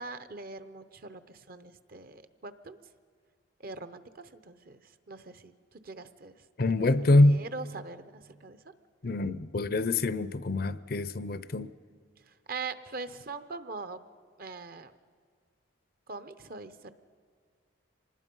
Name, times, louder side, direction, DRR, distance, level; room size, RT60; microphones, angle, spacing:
voice 1, 0.0-2.8 3.6-4.8 5.1-5.5 5.8-6.3 6.7-6.8 7.2-8.6 12.5-14.0 14.4-14.9 16.1-16.9, right 4 dB, 45° right, 0.8 m, -42 dB
voice 2, 6.6-7.5 9.0-11.7, left 2 dB, 50° left, 0.6 m, -25 dB
25.0 x 19.5 x 5.4 m
head